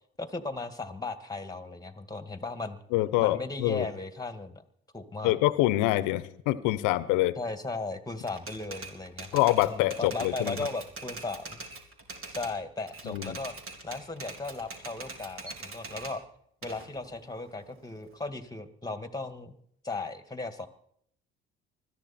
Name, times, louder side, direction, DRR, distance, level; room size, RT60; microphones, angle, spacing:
voice 1, 0.2-2.8 3.2-4.6 4.9-5.4 7.4-11.6 12.3-13.5 13.8-16.2 16.6-19.5 19.8-20.7, left 3 dB, 10° left, 9 dB, 2.1 m, -36 dB
voice 2, 2.9-3.9 5.2-7.4 9.3-10.6 13.0-13.4, left 17 dB, 75° left, 16 dB, 1.0 m, -25 dB
Typewriter, 8.3-12.6 12.9-16.2 16.6-18.3, right 3 dB, 45° right, 3.9 m, -43 dB
21.0 x 13.5 x 4.4 m, 0.68 s
hypercardioid pair, 60°, 31 cm